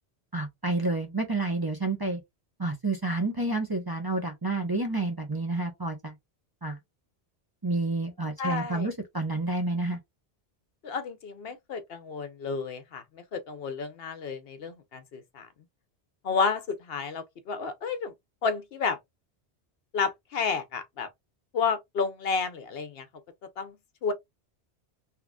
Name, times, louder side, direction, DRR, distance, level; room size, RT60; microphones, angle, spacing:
voice 1, 0.3-2.2 2.6-6.1 6.6-6.8 7.6-10.0, right 2 dB, 25° right, 0.6 m, -29 dB
voice 2, 8.4-8.9 10.8-15.5 16.2-18.1 18.4-19.0 19.9-21.1 21.5-23.1 23.6-23.8 24.0-24.1, left 5 dB, 65° left, 0.8 m, -31 dB
3.7 x 2.9 x 2.2 m
omnidirectional pair, 1.1 m